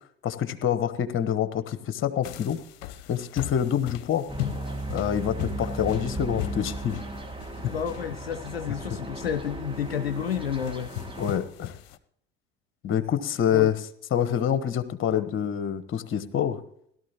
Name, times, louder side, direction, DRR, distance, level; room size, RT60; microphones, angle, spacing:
voice 1, 0.2-2.6 3.1-4.2 4.9-7.0 11.2-11.7 12.8-13.8 14.1-16.6, left 9 dB, 45° left, 12 dB, 1.2 m, -26 dB
sound 1, 2.2-12.0, left 13 dB, 60° left, 0.8 m, -39 dB
sound 2, 4.3-11.4, right 2 dB, 15° right, 2.1 m, -36 dB
voice 2, 7.5-10.9 13.5-13.7, left 8 dB, 90° left, 9 dB, 0.5 m, -30 dB
17.5 x 12.5 x 3.0 m, 0.67 s
figure-of-eight pair, 65°, 29 cm